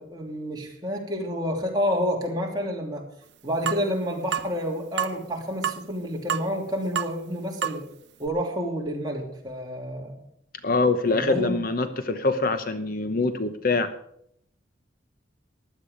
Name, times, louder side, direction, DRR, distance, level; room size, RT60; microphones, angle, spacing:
voice 1, 0.0-3.0 3.4-7.8 8.2-10.1 11.1-11.6, equal, 20° right, -1 dB, 3.0 m, -29 dB
sound 1, 3.7-3.9 4.3-4.5 5.0-5.2 5.6-5.9 6.3-6.6 7.0-7.1 7.6-7.8 8.3-8.4, right 9 dB, 60° right, 0.6 m, -28 dB
voice 2, 10.6-13.9, left 3 dB, 45° left, 10 dB, 0.9 m, -24 dB
15.5 x 11.0 x 5.2 m, 0.70 s
head